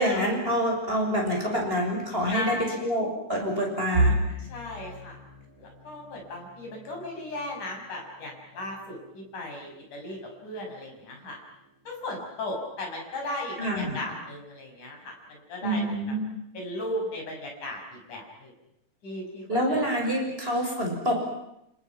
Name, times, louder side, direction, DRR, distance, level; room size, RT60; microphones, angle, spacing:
voice 1, 0.0-4.2 13.6-14.0 15.6-16.2 19.5-21.1, equal, 15° right, 0 dB, 6.6 m, -27 dB
voice 2, 2.3-2.9 4.4-5.2 5.6-11.4 11.8-16.1 16.5-18.5 19.0-19.8 20.3-20.4, left 1 dB, 70° left, 1 dB, 8.2 m, -36 dB
sound 1, 3.9-15.8 16.2-16.5 16.8-17.0 17.9-18.3, right 1 dB, 65° right, 5.0 m, -35 dB
29.0 x 29.0 x 6.0 m, 0.81 s
omnidirectional pair, 3.6 m